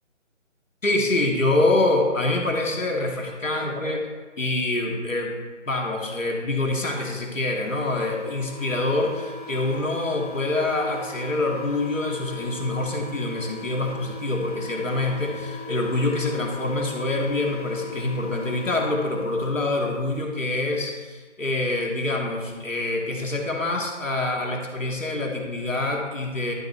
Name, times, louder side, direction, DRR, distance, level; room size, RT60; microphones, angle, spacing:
voice 1, 0.8-4.1 4.4-5.4 5.7-26.5, left 2 dB, 90° left, 0 dB, 2.1 m, -25 dB
sound 1, 7.5-19.6, left 2 dB, 30° right, 1.1 m, -39 dB
11.5 x 7.1 x 3.3 m, 1.4 s
figure-of-eight pair, 160°, 38 cm